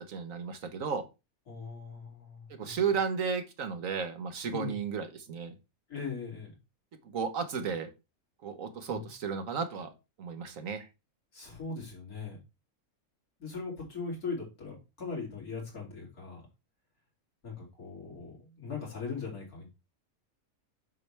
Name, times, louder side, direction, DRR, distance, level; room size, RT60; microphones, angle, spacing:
voice 1, 0.1-1.0 2.6-5.5 7.1-7.9 8.4-9.9 10.2-10.9, right 6 dB, 65° right, 8 dB, 1.4 m, -33 dB
voice 2, 1.5-2.8 4.5-4.7 5.9-6.5 8.9-9.0 11.3-12.4 13.4-16.4 17.4-19.7, left 4 dB, 85° left, -2 dB, 3.5 m, -40 dB
7.4 x 5.9 x 3.3 m, 0.26 s
omnidirectional pair, 1.5 m